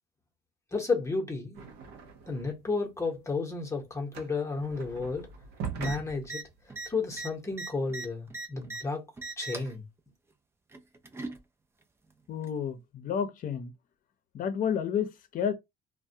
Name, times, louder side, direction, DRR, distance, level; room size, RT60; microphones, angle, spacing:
voice 1, 0.7-1.7 2.3-5.3 5.8-6.4 6.9-9.0 9.4-9.8, left 4 dB, 15° left, 0.8 m, -32 dB
sound 1, 1.5-2.7 3.0-7.6, right 6 dB, 90° right, 0.6 m, -42 dB
sound 2, 5.8-6.0 6.2-6.4 6.7-8.8 9.2-9.7 10.7-11.4 12.4-12.5, right 2 dB, 15° right, 0.4 m, -39 dB
voice 2, 12.3-13.7 14.3-15.5, left 8 dB, 50° left, 0.6 m, -31 dB
2.2 x 2.1 x 2.6 m
cardioid pair, 110°, 17 cm